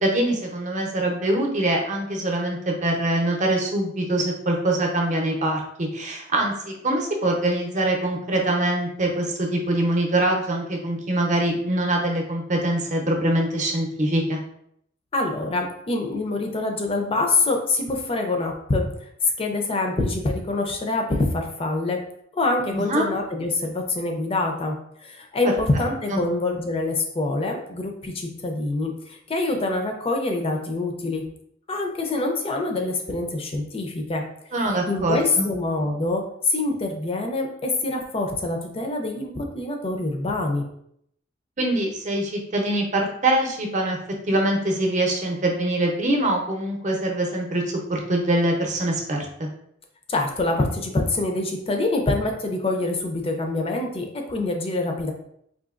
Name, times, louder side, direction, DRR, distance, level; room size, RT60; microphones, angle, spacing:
voice 1, 0.0-14.4 22.7-23.1 26.1-26.3 34.5-35.5 41.6-44.0 44.3-47.6 47.9-49.5, right 1 dB, 40° right, 1 dB, 0.7 m, -24 dB
voice 2, 15.1-18.8 19.4-22.0 22.3-24.8 25.0-31.2 31.7-34.2 34.9-40.6 50.1-55.1, left 2 dB, 30° left, 3 dB, 0.5 m, -25 dB
3.8 x 2.7 x 2.5 m, 0.70 s
head